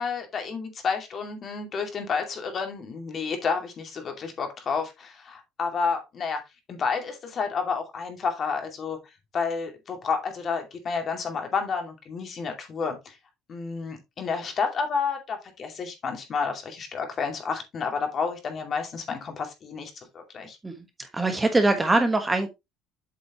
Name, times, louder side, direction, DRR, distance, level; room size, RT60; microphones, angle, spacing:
voice 1, 0.0-6.4 6.7-9.0 9.3-13.2 13.5-20.6, left 5 dB, 40° left, 2.4 m, -30 dB
voice 2, 21.0-22.5, right 2 dB, 15° right, 1.4 m, -22 dB
8.0 x 6.3 x 3.0 m
cardioid pair, 120°, 0 cm